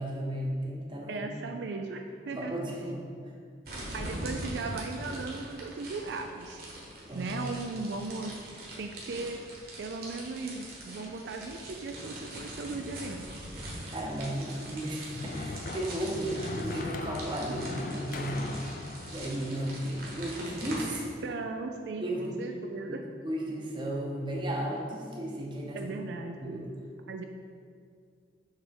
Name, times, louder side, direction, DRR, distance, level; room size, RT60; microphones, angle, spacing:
voice 1, 0.0-1.4 2.3-3.3 3.8-3.9 7.1-7.3 13.9-18.6 19.1-21.1 21.9-22.4 22.9-23.0 23.2-25.8 26.4-26.7, right 1 dB, 25° right, -1 dB, 0.8 m, -34 dB
voice 2, 1.1-2.5 3.9-6.6 7.1-8.3 8.8-9.4 9.8-13.3 21.2-23.0 25.7-26.6 27.1-27.2, right 3 dB, 70° right, 4 dB, 0.4 m, -37 dB
sound 1, 3.6-20.8, right 1 dB, 50° right, 1.3 m, -42 dB
sound 2, 14.6-20.8, left 2 dB, 45° left, 0.3 m, -40 dB
6.4 x 3.5 x 5.2 m, 2.2 s
head